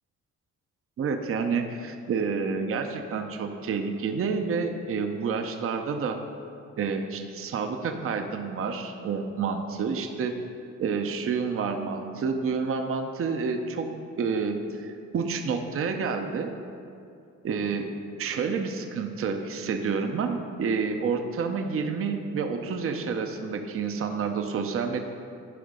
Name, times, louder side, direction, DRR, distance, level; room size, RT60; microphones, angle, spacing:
voice 1, 1.0-6.2 6.8-10.3 10.8-13.9 14.2-16.5 17.4-17.9 18.2-25.0, right 5 dB, 45° right, 5 dB, 0.7 m, -29 dB
11.0 x 3.9 x 5.3 m, 2.5 s
cardioid pair, 90°, 30 cm